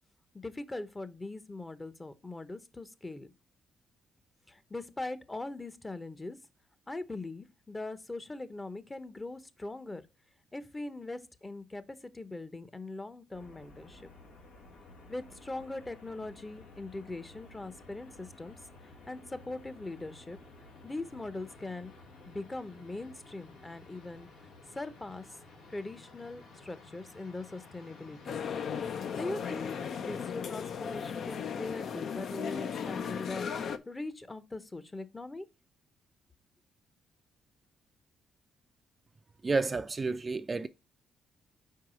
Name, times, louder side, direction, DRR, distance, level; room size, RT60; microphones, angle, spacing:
voice 1, 0.3-3.3 4.5-6.4 6.9-10.0 10.5-14.1 15.1-18.6 18.8-20.4 20.8-21.9 22.3-24.3 24.8-25.3 25.7-28.4 29.1-35.5, left 2 dB, 20° left, 0.8 m, -41 dB
sound 1, 13.3-30.3, left 3 dB, 85° left, 1.8 m, -54 dB
sound 2, 28.3-33.8, left 7 dB, 60° left, 0.6 m, -36 dB
voice 2, 39.4-40.7, right 3 dB, 30° right, 0.4 m, -30 dB
4.8 x 4.6 x 6.0 m
cardioid pair, 90°, 0 cm